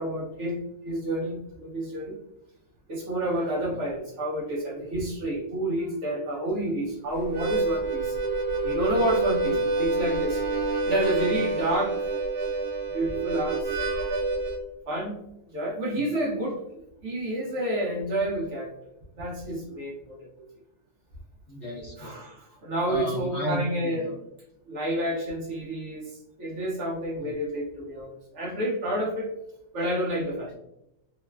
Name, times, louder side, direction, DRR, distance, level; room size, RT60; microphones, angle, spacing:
voice 1, 0.0-2.2 2.9-8.2 8.6-10.4 10.8-12.1 12.9-13.8 14.9-15.2 15.5-18.8 19.2-20.3 22.0-24.2 24.7-29.3 29.7-30.5, right 1 dB, 60° right, -4 dB, 0.8 m, -29 dB
Harmonica, 7.2-14.6, right 3 dB, 85° right, 1.1 m, -27 dB
voice 2, 21.5-22.2 22.9-24.1 27.2-27.3, equal, 55° left, -5 dB, 0.9 m, -34 dB
3.0 x 2.1 x 2.2 m, 0.85 s
omnidirectional pair, 1.6 m